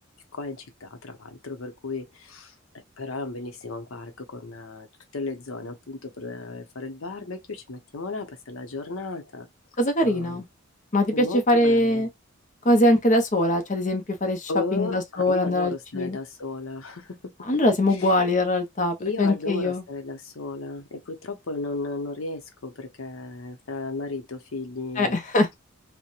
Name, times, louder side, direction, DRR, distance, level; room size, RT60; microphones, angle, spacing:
voice 1, 0.3-2.5 3.0-4.9 5.1-9.5 10.0-10.4 11.1-12.1 14.5-17.3 17.9-18.1 19.0-25.2, left 3 dB, 85° left, 0.7 m, -34 dB
voice 2, 9.8-10.5 10.9-12.1 12.6-16.2 17.5-19.8 25.0-25.5, left 1 dB, 40° left, 0.7 m, -22 dB
2.9 x 2.1 x 2.3 m
head